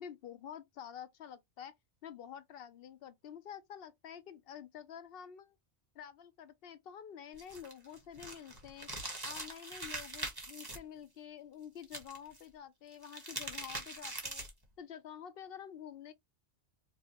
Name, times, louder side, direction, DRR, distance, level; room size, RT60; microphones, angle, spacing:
voice 1, 0.0-1.7 2.0-5.6 5.9-8.9 9.2-14.5 14.8-16.1, left 8 dB, 65° left, 0.7 m, -49 dB
sound 1, 7.4-10.8 11.8-12.4 12.9-14.6, right 2 dB, 20° right, 1.0 m, -42 dB
4.6 x 2.1 x 2.8 m
omnidirectional pair, 1.1 m